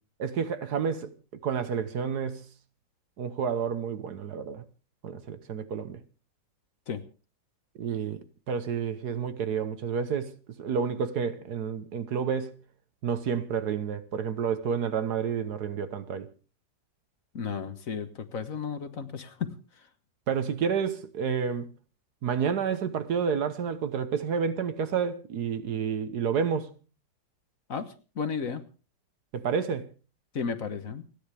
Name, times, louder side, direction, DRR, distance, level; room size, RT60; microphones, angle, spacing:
voice 1, 0.2-1.1 1.4-2.4 3.2-4.6 5.0-6.0 7.8-8.2 8.5-12.5 13.0-16.3 20.3-21.7 22.2-26.7 29.3-29.9, right 6 dB, 65° right, 1.6 m, -30 dB
voice 2, 17.3-19.5 27.7-28.6 30.3-31.0, left 6 dB, 50° left, 1.6 m, -33 dB
29.5 x 10.0 x 3.4 m
omnidirectional pair, 1.9 m